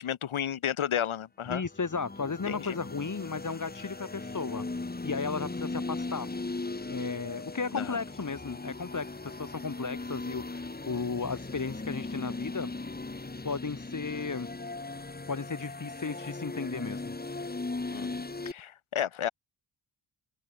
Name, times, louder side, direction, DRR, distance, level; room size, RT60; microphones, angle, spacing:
voice 1, 0.0-1.6 2.5-2.8 7.7-8.0 17.9-19.3, left 9 dB, 75° left, 1.4 m, -32 dB
voice 2, 1.5-6.3 6.9-12.7 13.4-14.5 15.3-17.1, left 4 dB, 35° left, 4.0 m, -35 dB
sound 1, 1.6-18.5, left 3 dB, 20° left, 2.0 m, -38 dB
open air
wide cardioid pair, 170°, 49 cm